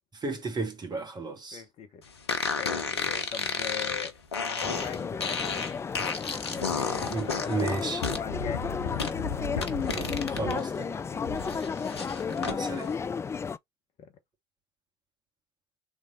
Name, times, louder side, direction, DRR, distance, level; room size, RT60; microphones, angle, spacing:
voice 1, 0.1-1.6 7.0-8.1 9.9-11.0 12.4-12.9, right 3 dB, 30° right, 1.8 m, -34 dB
voice 2, 1.5-2.0 2.6-5.5 6.7-9.8 11.7-11.8 14.0-14.1, left 7 dB, 50° left, 1.0 m, -41 dB
sound 1, 2.3-10.6 10.9-12.6, left 5 dB, 85° left, 0.7 m, -32 dB
sound 2, 4.6-13.6, left 6 dB, 20° left, 0.4 m, -33 dB
3.5 x 3.4 x 3.8 m
figure-of-eight pair, 60°, 13 cm